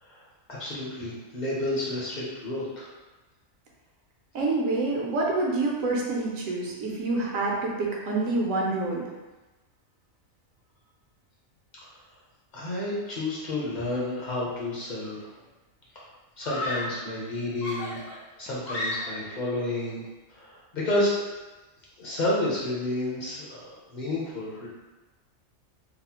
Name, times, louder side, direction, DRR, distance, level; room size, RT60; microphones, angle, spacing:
voice 1, 0.0-2.9 12.5-15.2 15.9-16.1 16.4-18.0 18.4-21.3 22.0-24.7, left 1 dB, 45° left, -6 dB, 0.7 m, -30 dB
voice 2, 4.3-9.1, right 2 dB, 80° right, -3 dB, 1.1 m, -27 dB
Screaming, 14.9-15.3 16.4-17.1 17.6-19.4, left 1 dB, 85° left, 1.1 m, -34 dB
4.0 x 2.0 x 2.8 m, 1.2 s
omnidirectional pair, 1.4 m